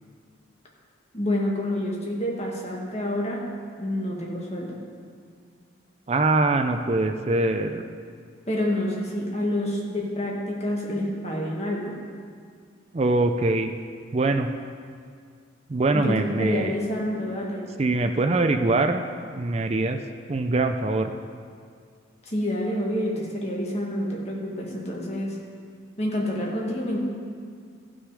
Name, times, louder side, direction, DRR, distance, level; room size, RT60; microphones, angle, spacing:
voice 1, 1.1-3.5 3.8-4.8 8.5-12.0 15.9-17.7 22.3-25.4 26.0-27.0, left 1 dB, 30° left, -2 dB, 1.7 m, -28 dB
voice 2, 6.1-7.8 12.9-13.7 14.1-14.5 15.7-16.7 17.8-19.0 19.3-20.0 20.3-21.1, right 2 dB, 30° right, 6 dB, 0.4 m, -23 dB
14.5 x 6.2 x 4.9 m, 2.1 s
head